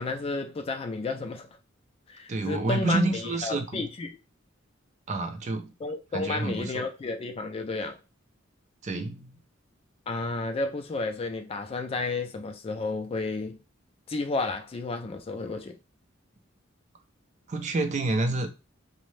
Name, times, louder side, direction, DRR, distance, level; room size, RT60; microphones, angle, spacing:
voice 1, 0.0-1.5 2.1-4.1 5.8-8.0 10.1-13.6 14.1-15.8, left 3 dB, 30° left, 0.3 m, -32 dB
voice 2, 2.3-3.9 5.1-5.7 6.1-6.8 8.8-9.3 17.5-18.5, right 2 dB, 40° right, 0.4 m, -28 dB
2.6 x 2.0 x 3.1 m
head